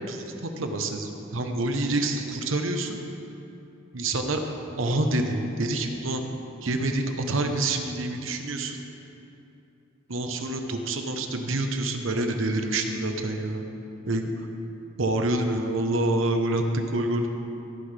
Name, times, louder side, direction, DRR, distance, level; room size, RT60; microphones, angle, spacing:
voice 1, 0.1-3.0 3.9-4.4 4.8-6.2 6.6-8.8 10.1-13.6 14.1-14.3 15.0-17.3, right 2 dB, 85° right, 5 dB, 1.0 m, -27 dB
17.0 x 9.8 x 3.4 m, 2.9 s
head